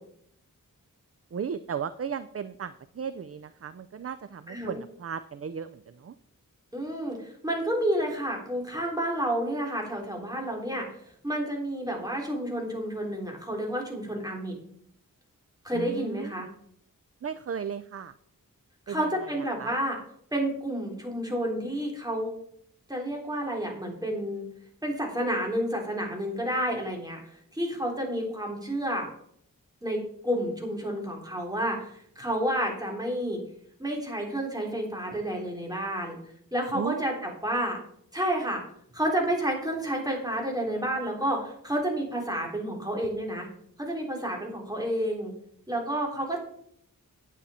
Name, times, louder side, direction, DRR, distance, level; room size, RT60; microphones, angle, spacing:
voice 1, 1.3-6.1 15.7-16.5 17.2-18.1 18.9-19.7 36.7-37.0, right 7 dB, 40° right, 13 dB, 0.5 m, -36 dB
voice 2, 4.5-4.8 6.7-10.9 11.2-14.5 15.6-16.5 18.9-20.0 20.3-22.3 22.9-24.5 24.8-29.1 29.8-33.4 33.8-36.2 36.5-37.8 38.1-38.6 38.9-43.5 43.8-45.3 45.7-46.4, right 1 dB, 10° right, 0 dB, 3.5 m, -30 dB
10.5 x 8.6 x 4.3 m, 0.67 s
wide cardioid pair, 70°, 35 cm